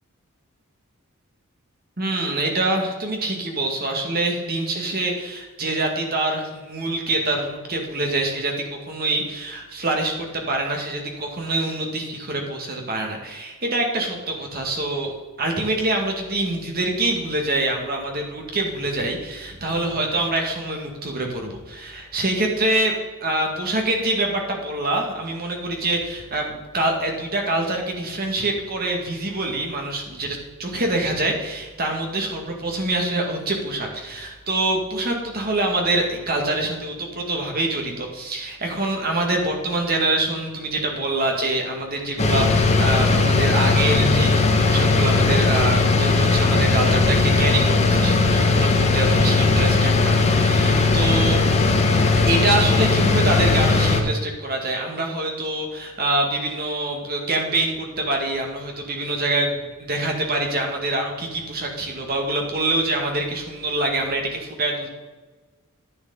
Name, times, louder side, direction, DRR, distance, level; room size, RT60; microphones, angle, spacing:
voice 1, 2.0-15.1 15.4-22.9 23.2-51.4 52.3-64.9, right 2 dB, 45° right, 2 dB, 2.1 m, -25 dB
sound 1, 42.2-54.0, left 3 dB, 30° left, 1.2 m, -18 dB
10.5 x 9.7 x 4.1 m, 1.3 s
head